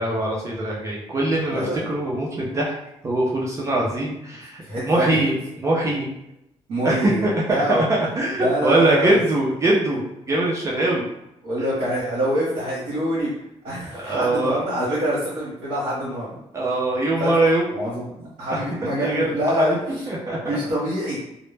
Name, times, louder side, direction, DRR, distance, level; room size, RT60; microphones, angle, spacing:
voice 1, 0.0-2.7 3.0-6.1 6.8-11.0 11.6-11.7 13.9-14.6 16.5-17.6 18.5-18.6 19.0-20.6, right 2 dB, 25° right, -4 dB, 0.4 m, -22 dB
voice 2, 1.5-1.8 4.6-5.2 6.7-7.8 8.4-9.2 11.4-13.3 13.6-16.4 17.2-17.3 17.7-20.0 20.4-21.2, equal, 70° right, -8 dB, 0.8 m, -25 dB
2.0 x 2.0 x 3.2 m, 0.83 s
wide cardioid pair, 165°, 12 cm